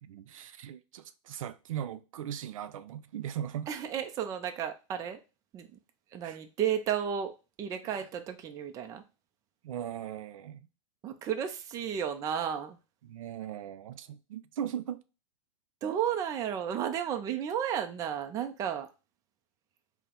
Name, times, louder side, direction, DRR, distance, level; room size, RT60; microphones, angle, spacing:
voice 1, 0.0-3.7 6.2-6.4 7.8-8.0 9.6-10.6 13.0-15.0, right 10 dB, 90° right, 0.4 m, -39 dB
voice 2, 3.7-5.2 5.5-5.7 6.1-7.3 7.6-9.0 11.0-12.8 15.8-18.9, right 9 dB, 20° right, 0.4 m, -33 dB
4.3 x 2.1 x 3.7 m
supercardioid pair, 150°, 17 cm